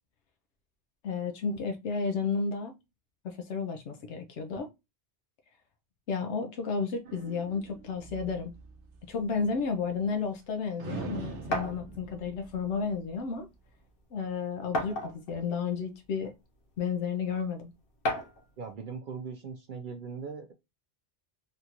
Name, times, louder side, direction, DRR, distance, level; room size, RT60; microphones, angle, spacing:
voice 1, 1.0-2.7 3.2-4.7 6.1-8.5 9.1-13.5 14.1-16.3 16.8-17.7, left 5 dB, 85° left, 0.9 m, -32 dB
sound 1, 7.0-10.5 10.8-13.5, right 4 dB, 85° right, 0.9 m, -44 dB
sound 2, 11.5-11.8 12.9-13.0 13.4-13.5 14.7-15.4 16.2-16.3 18.0-18.4, left 1 dB, 55° left, 1.0 m, -31 dB
voice 2, 18.6-20.5, right 5 dB, 60° right, 0.6 m, -40 dB
3.7 x 2.4 x 2.8 m
omnidirectional pair, 1.1 m